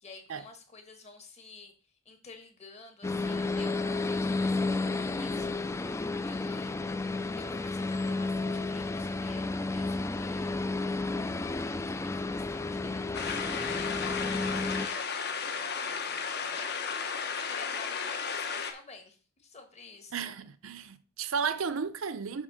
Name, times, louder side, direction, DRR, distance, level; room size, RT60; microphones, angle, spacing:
voice 1, 0.0-1.7 2.0-6.8 7.4-10.7 11.9-17.1 17.5-20.3, left 3 dB, 35° left, 1.5 m, -51 dB
sound 1, 3.0-14.9, left 3 dB, 15° left, 0.3 m, -32 dB
sound 2, 13.1-18.7, left 6 dB, 55° left, 1.1 m, -34 dB
voice 2, 20.1-22.4, right 6 dB, 80° right, 0.6 m, -33 dB
7.4 x 3.5 x 6.4 m
head